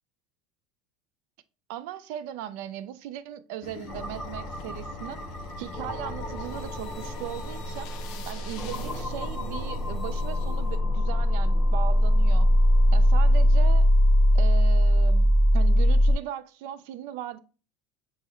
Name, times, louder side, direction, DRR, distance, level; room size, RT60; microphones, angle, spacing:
voice 1, 1.7-5.2 5.6-7.9 8.3-12.5 12.9-13.9 14.3-17.4, right 11 dB, 70° right, 0.4 m, -38 dB
sound 1, 3.6-14.2, left 4 dB, 55° left, 0.5 m, -44 dB
sound 2, 3.9-16.1, equal, 25° left, 0.9 m, -22 dB
5.5 x 2.1 x 3.6 m
supercardioid pair, 140°, 0 cm